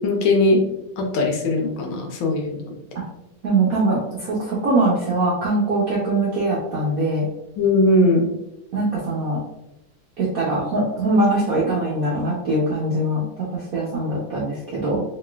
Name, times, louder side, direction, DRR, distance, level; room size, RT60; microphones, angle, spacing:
voice 1, 0.0-0.7 1.0-2.6 7.6-8.3, left 2 dB, 75° left, 1 dB, 1.4 m, -19 dB
voice 2, 3.4-7.3 8.7-9.4 10.2-13.2 13.5-15.0, right 2 dB, 70° right, -5 dB, 0.8 m, -22 dB
3.9 x 3.1 x 2.3 m, 0.89 s
omnidirectional pair, 2.3 m